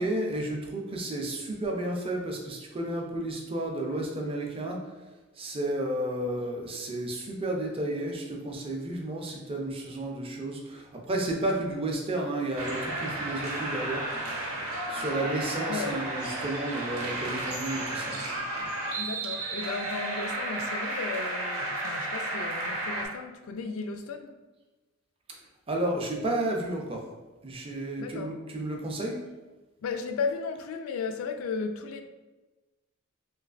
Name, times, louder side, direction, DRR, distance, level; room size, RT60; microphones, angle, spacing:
voice 1, 0.0-4.9 5.4-14.0 14.9-18.7 25.7-27.0 27.4-29.2, right 1 dB, 25° right, 0.5 m, -32 dB
sound 1, 12.6-23.1, right 2 dB, 90° right, 0.8 m, -33 dB
voice 2, 15.7-16.0 19.0-24.3 28.0-28.4 29.8-32.0, left 5 dB, 65° left, 0.3 m, -35 dB
3.1 x 3.0 x 2.4 m
head